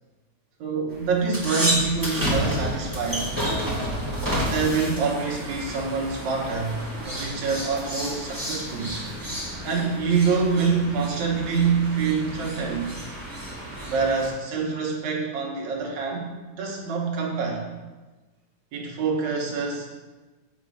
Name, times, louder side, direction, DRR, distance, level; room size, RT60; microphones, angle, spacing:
voice 1, 0.6-3.3 4.4-8.9 9.6-12.9 13.9-17.6 18.7-19.9, right 5 dB, 70° right, -2 dB, 2.6 m, -26 dB
sound 1, 0.9-14.3, equal, 10° right, 1.2 m, -30 dB
8.1 x 5.3 x 5.0 m, 1.2 s
omnidirectional pair, 3.5 m